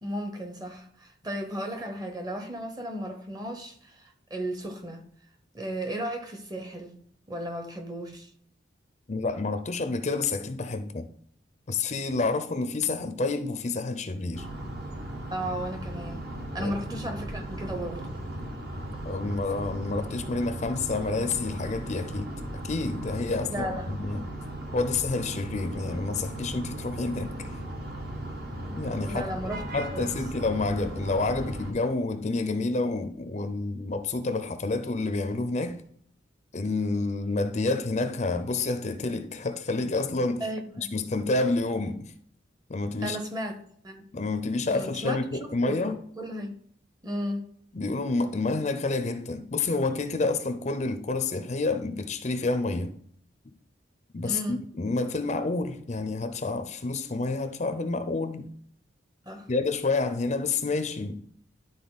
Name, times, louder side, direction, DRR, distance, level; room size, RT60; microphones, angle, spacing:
voice 1, 0.0-5.1 5.5-7.0 7.3-8.3 15.3-18.2 23.5-23.9 29.1-29.6 29.9-30.1 40.4-40.9 43.0-44.1 44.7-45.4 45.6-46.5 47.0-47.5 54.2-54.6 59.3-59.5, right 1 dB, 20° right, 0.9 m, -35 dB
voice 2, 9.1-11.1 11.7-14.5 16.6-17.0 19.0-22.3 22.6-24.3 24.7-27.6 28.7-29.2 29.7-35.8 36.5-40.5 40.8-42.1 42.7-43.2 44.1-46.0 47.7-52.9 54.1-58.5 59.5-61.3, left 3 dB, 35° left, 0.5 m, -29 dB
sound 1, 14.3-31.7, right 1 dB, 55° right, 1.5 m, -37 dB
11.5 x 3.9 x 4.0 m
head